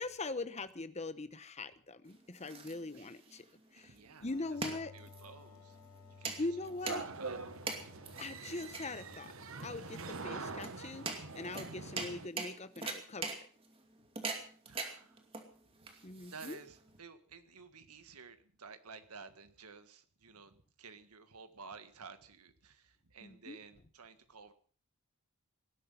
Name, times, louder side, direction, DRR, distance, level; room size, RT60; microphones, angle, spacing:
voice 1, 0.0-3.5 3.7-3.9 4.2-4.9 6.4-7.1 8.2-9.3 9.6-11.0 11.3-13.4 16.0-16.6 23.2-23.6, left 2 dB, 30° left, 13 dB, 1.0 m, -41 dB
sound 1, 2.0-17.0, right 4 dB, 25° right, 2.4 m, -44 dB
voice 2, 2.9-3.4 3.7-5.8 6.0-6.7 7.2-7.4 14.6-15.2 16.2-24.5, right 4 dB, 90° right, 10 dB, 1.7 m, -53 dB
sound 2, 4.2-11.7, left 4 dB, 80° left, 2.1 m, -59 dB
sound 3, 6.8-12.3, right 4 dB, 65° right, 1.3 m, -44 dB
18.5 x 12.5 x 5.6 m, 0.44 s
head